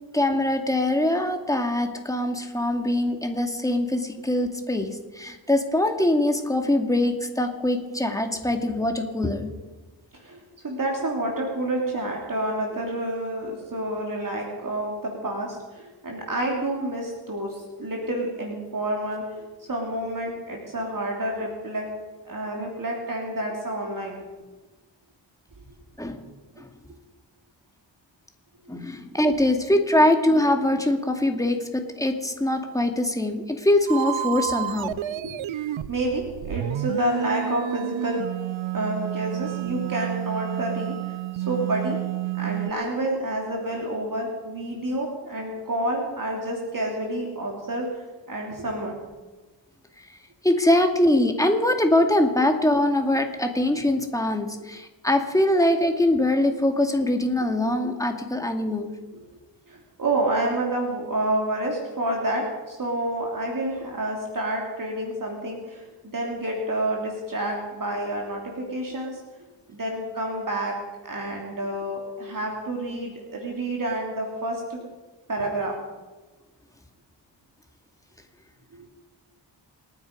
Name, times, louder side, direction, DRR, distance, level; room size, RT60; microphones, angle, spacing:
voice 1, 0.1-9.5 26.0-26.2 28.7-35.0 50.4-58.9, left 1 dB, 5° left, 4 dB, 2.3 m, -23 dB
voice 2, 10.1-21.9 22.2-24.2 35.1-38.2 38.7-42.0 42.3-48.0 48.3-49.0 53.7-53.8 57.4-57.5 59.1-59.2 59.7-69.2 69.7-70.8 71.0-74.8 75.3-75.8 78.7-78.9, right 1 dB, 45° right, -1 dB, 3.1 m, -29 dB
sound 1, 33.9-42.7, right 14 dB, 90° right, 0.6 m, -30 dB
28.0 x 9.7 x 5.3 m, 1.2 s
cardioid pair, 80°, 45 cm